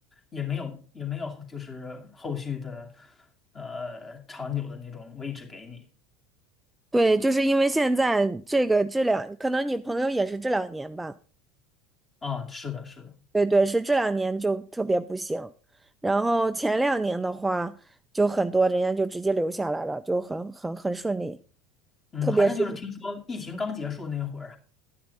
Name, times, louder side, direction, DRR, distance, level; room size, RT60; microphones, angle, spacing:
voice 1, 0.3-3.1 3.5-5.8 12.2-13.2 22.1-24.6, left 6 dB, 25° left, 2.6 m, -34 dB
voice 2, 6.9-11.1 13.3-15.5 16.0-17.7 18.1-21.4 22.2-22.5, right 2 dB, 10° right, 0.5 m, -24 dB
12.0 x 10.0 x 4.1 m
figure-of-eight pair, 75°, 0 cm